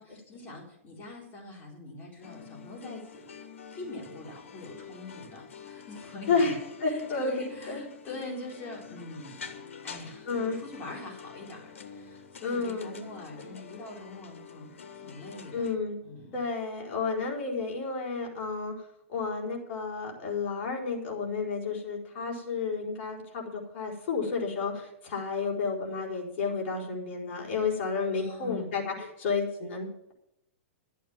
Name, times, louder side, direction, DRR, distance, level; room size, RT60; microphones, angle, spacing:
voice 1, 0.0-3.3 3.7-6.5 6.9-15.7 16.0-16.4 28.1-28.7, left 2 dB, 30° left, -1 dB, 4.1 m, -43 dB
sound 1, 2.2-15.8, left 6 dB, 85° left, 1.5 m, -47 dB
voice 2, 6.3-7.8 10.3-10.6 12.4-13.1 15.5-16.0 16.3-18.7 19.1-30.1, left 4 dB, 55° left, -1 dB, 4.7 m, -31 dB
12.5 x 8.4 x 7.5 m, 0.78 s
hypercardioid pair, 125°, 7 cm